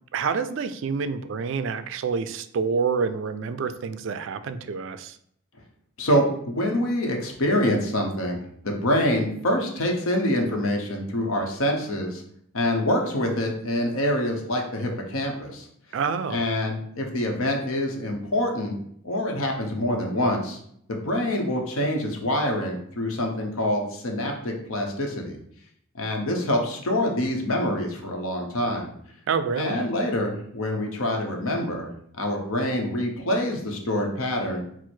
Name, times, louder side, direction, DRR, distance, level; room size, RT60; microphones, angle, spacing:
voice 1, 0.1-5.2 15.9-16.4 29.3-29.9, right 5 dB, 60° right, 11 dB, 0.3 m, -27 dB
voice 2, 6.0-12.2 12.5-15.7 16.3-18.8 19.0-20.6 20.9-25.4 25.9-28.9 29.6-31.9 32.2-34.6, left 1 dB, 75° left, 2 dB, 0.8 m, -26 dB
4.5 x 2.1 x 4.3 m, 0.68 s
head